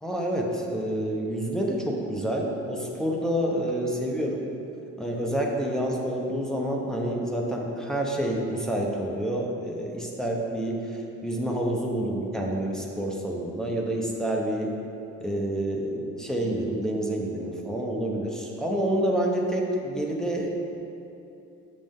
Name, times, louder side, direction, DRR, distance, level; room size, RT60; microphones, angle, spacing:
voice 1, 0.0-4.4 5.0-14.7 15.2-20.5, right 1 dB, ahead, -2 dB, 0.9 m, -28 dB
7.5 x 5.1 x 3.7 m, 2.8 s
cardioid pair, 90°, 30 cm